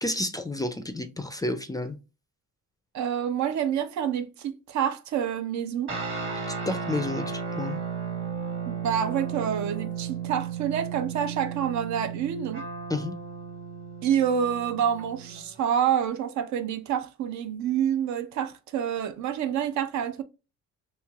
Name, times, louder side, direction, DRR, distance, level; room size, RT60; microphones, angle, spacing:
voice 1, 0.0-2.0 6.7-7.8 12.9-13.1, left 2 dB, 15° left, 0.3 m, -30 dB
voice 2, 2.9-5.9 8.6-12.6 14.0-20.2, right 8 dB, 70° right, 0.5 m, -27 dB
sound 1, 5.9-15.6, right 6 dB, 40° right, 1.4 m, -34 dB
3.1 x 2.8 x 2.3 m
cardioid pair, 90°, 30 cm